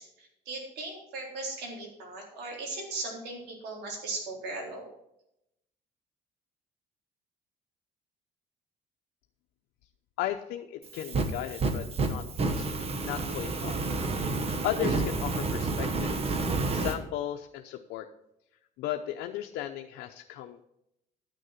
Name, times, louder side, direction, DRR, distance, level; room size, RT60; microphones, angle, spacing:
voice 1, 0.0-4.9, right 3 dB, 75° right, -1 dB, 3.9 m, -38 dB
voice 2, 10.2-12.7 13.0-13.8 14.6-16.4 16.6-18.1 18.8-20.6, left 12 dB, 85° left, 4 dB, 0.7 m, -35 dB
Fire, 10.8-17.0, right 3 dB, 35° right, 1.3 m, -30 dB
12.0 x 6.5 x 5.9 m, 0.81 s
cardioid pair, 110°, 17 cm